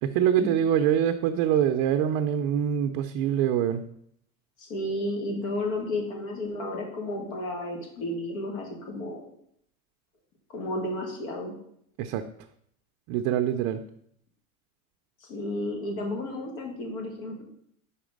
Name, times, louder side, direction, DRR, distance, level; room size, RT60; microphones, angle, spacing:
voice 1, 0.0-3.8 12.0-12.2 13.1-13.8, right 9 dB, 45° right, 7 dB, 0.5 m, -24 dB
voice 2, 4.6-9.3 10.5-11.5 15.3-17.4, left 1 dB, 70° left, 1 dB, 2.1 m, -32 dB
5.8 x 4.2 x 5.2 m, 0.70 s
supercardioid pair, 125°, 42 cm